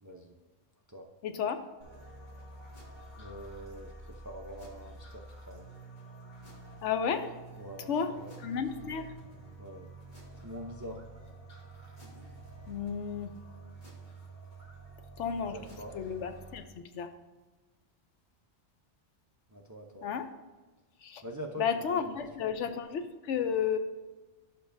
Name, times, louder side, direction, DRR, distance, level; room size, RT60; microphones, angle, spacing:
voice 1, 0.0-0.3 0.9-1.1 3.2-5.7 7.6-8.4 8.7-8.9 9.6-9.9 10.4-11.0 15.4-16.0 19.5-20.1 21.2-22.1 22.4-22.5, equal, 25° right, 2 dB, 0.4 m, -44 dB
voice 2, 1.2-1.6 6.8-7.3 7.9-8.1 8.4-9.1 12.7-13.3 15.2-15.6 15.9-17.1 20.0-20.3 21.0-21.2 21.6-23.8, left 7 dB, 80° left, 8 dB, 1.0 m, -32 dB
sound 1, 1.8-16.6, right 2 dB, 40° left, 1.8 m, -49 dB
11.5 x 6.8 x 2.6 m, 1.2 s
omnidirectional pair, 1.2 m